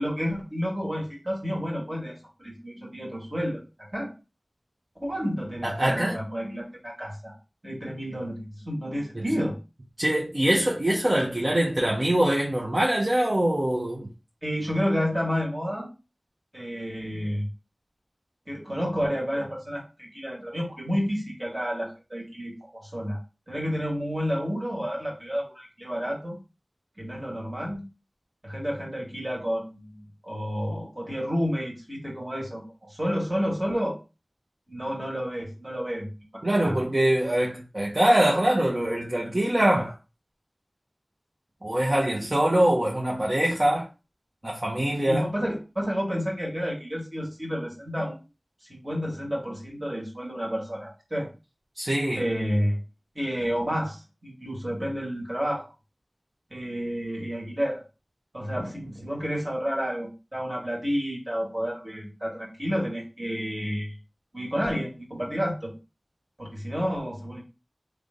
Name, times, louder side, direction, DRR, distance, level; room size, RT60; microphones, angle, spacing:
voice 1, 0.0-3.6 3.9-4.1 5.0-7.3 7.6-9.6 14.4-15.9 16.5-17.5 18.5-23.2 23.5-26.4 27.0-27.9 28.4-34.0 34.7-36.8 45.1-48.2 48.7-51.3 52.1-52.8 53.1-55.7 56.5-57.8 58.3-64.0 64.3-65.7 66.4-67.4, equal, 35° right, 2.3 m, -30 dB
voice 2, 5.6-6.2 9.1-9.3 10.0-14.1 36.4-39.9 41.6-43.9 44.4-45.2 51.8-52.3, right 1 dB, 50° right, 1.0 m, -23 dB
3.5 x 3.2 x 3.8 m
wide cardioid pair, 45°, 0 cm